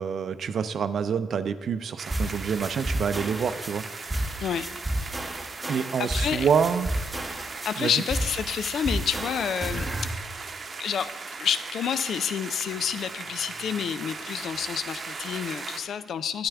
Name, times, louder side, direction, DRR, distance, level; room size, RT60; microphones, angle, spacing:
voice 1, 0.0-3.8 5.7-6.9 7.8-7.9, right 7 dB, 60° right, 12 dB, 0.5 m, -27 dB
sound 1, 2.0-15.8, right 4 dB, 45° right, 0.8 m, -38 dB
sound 2, 2.1-10.1, right 1 dB, 15° right, 0.9 m, -32 dB
voice 2, 4.4-4.7 6.0-6.5 7.6-9.8 10.8-11.1 11.4-16.5, left 8 dB, 65° left, 14 dB, 0.4 m, -29 dB
9.6 x 8.9 x 3.5 m, 1.3 s
supercardioid pair, 65°, 0 cm